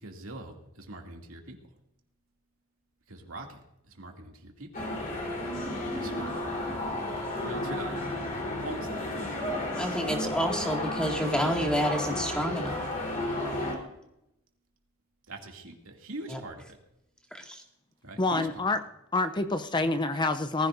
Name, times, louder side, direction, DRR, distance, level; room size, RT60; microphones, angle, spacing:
voice 1, 0.0-1.6 3.1-4.7 5.9-6.2 7.0-7.1 7.4-8.2 8.6-9.3 15.3-16.8 18.0-18.5, right 2 dB, 75° right, 1 dB, 2.5 m, -42 dB
sound 1, 4.7-13.8, left 1 dB, 40° left, 3.8 m, -32 dB
voice 2, 9.8-12.8 16.3-16.4 17.3-17.6, equal, 5° left, 1 dB, 2.1 m, -29 dB
voice 3, 18.2-18.8 19.1-20.7, left 2 dB, 20° left, 9 dB, 0.6 m, -27 dB
20.0 x 15.0 x 2.6 m, 0.85 s
head